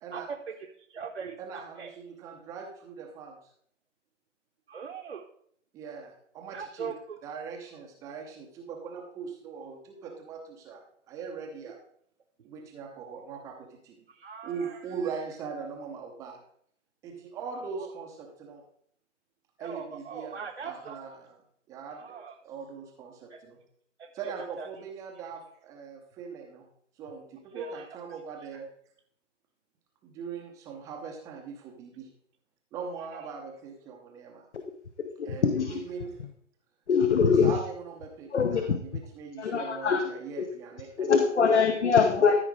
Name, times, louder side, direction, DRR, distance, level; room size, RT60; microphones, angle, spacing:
voice 1, 0.1-2.0 4.7-5.2 6.5-6.9 14.1-14.8 17.8-17.9 19.6-21.0 21.9-22.3 23.3-23.4 24.0-24.1 24.6-24.7 27.5-27.8 33.1-33.3 35.3-35.4, right 6 dB, 60° right, 1 dB, 1.2 m, -40 dB
voice 2, 1.4-3.4 5.7-6.9 7.2-11.8 12.4-14.0 14.4-16.4 17.0-18.6 19.6-21.4 21.7-22.2 22.4-23.6 24.1-26.6 27.0-28.7 30.0-32.1 32.7-34.4 35.2-36.1 37.3-41.5 42.2-42.3, right 5 dB, 10° right, 2 dB, 0.8 m, -41 dB
voice 3, 35.0-35.8 36.9-37.5 38.3-38.8 39.4-40.0 40.4-40.5 41.0-42.4, left 6 dB, 65° left, 6 dB, 1.1 m, -23 dB
13.5 x 4.9 x 4.8 m, 0.64 s
figure-of-eight pair, 140°, 38 cm